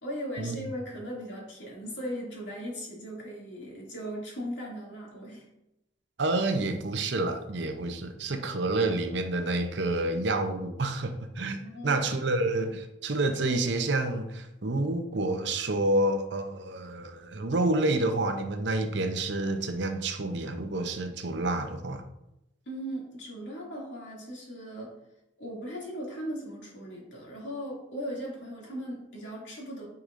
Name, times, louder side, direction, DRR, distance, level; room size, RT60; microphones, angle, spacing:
voice 1, 0.0-5.5 11.6-12.0 22.7-24.9 25.4-29.9, equal, 65° left, -4 dB, 2.5 m, -38 dB
voice 2, 6.2-22.0, right 2 dB, 60° right, 7 dB, 0.7 m, -29 dB
9.3 x 4.9 x 2.6 m, 0.87 s
head